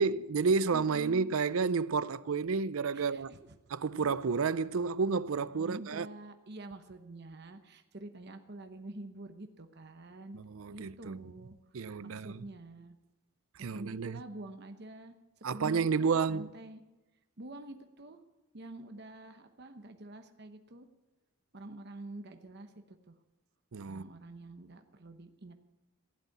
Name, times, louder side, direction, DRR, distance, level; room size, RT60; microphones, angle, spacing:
voice 1, 0.0-3.3 3.7-6.1 10.3-11.3 11.7-12.4 13.6-14.2 15.4-16.5 23.7-24.1, right 5 dB, 70° right, 0.5 m, -31 dB
voice 2, 0.7-1.3 2.9-3.6 5.6-10.4 10.7-11.5 12.0-13.0 13.6-15.1 15.5-16.8 17.4-18.2 18.5-20.9 21.5-23.2 23.9-25.5, right 2 dB, 50° right, 1.0 m, -47 dB
16.0 x 8.2 x 8.4 m
head